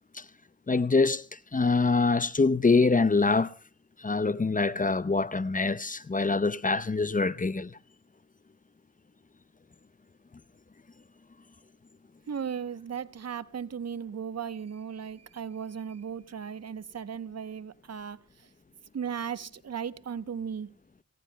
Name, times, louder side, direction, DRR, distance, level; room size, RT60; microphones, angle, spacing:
voice 1, 0.7-3.5 4.0-7.8, left 3 dB, 25° left, 0.7 m, -25 dB
voice 2, 12.3-18.5 18.9-20.7, right 7 dB, 55° right, 0.8 m, -36 dB
28.0 x 17.0 x 2.2 m
cardioid pair, 45°, 30 cm